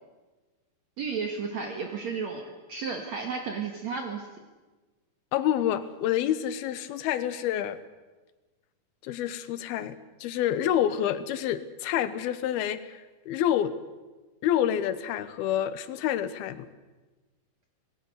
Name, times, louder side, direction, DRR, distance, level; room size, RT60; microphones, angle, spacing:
voice 1, 1.0-4.3, right 5 dB, 55° right, 3 dB, 2.5 m, -33 dB
voice 2, 5.3-7.8 9.0-9.9 10.2-13.7 14.4-16.7, left 11 dB, 80° left, 13 dB, 3.0 m, -28 dB
26.0 x 19.5 x 6.8 m, 1.2 s
omnidirectional pair, 4.4 m